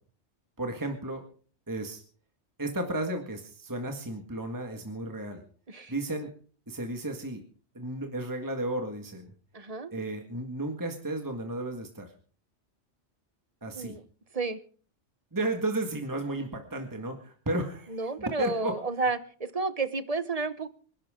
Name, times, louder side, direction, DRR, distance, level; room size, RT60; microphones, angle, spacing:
voice 1, 0.6-1.2 1.7-2.0 2.6-5.4 5.9-6.3 6.7-7.4 7.7-9.3 9.9-12.1 13.6-14.0 15.3-18.8, right 2 dB, 15° right, 4 dB, 1.8 m, -33 dB
voice 2, 9.5-9.9 13.7-14.0 14.3-14.6 17.9-20.7, right 4 dB, 35° right, 13 dB, 1.0 m, -31 dB
26.0 x 12.0 x 3.8 m, 0.43 s
omnidirectional pair, 1.2 m